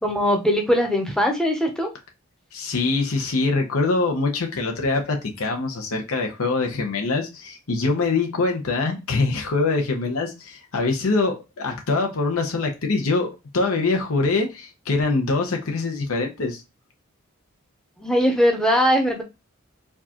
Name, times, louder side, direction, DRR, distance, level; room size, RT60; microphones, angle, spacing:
voice 1, 0.0-1.9 18.0-19.2, equal, 5° left, 0.7 m, -20 dB
voice 2, 2.5-13.3 13.5-16.6, left 3 dB, 80° left, 0.8 m, -24 dB
4.5 x 2.4 x 2.9 m
head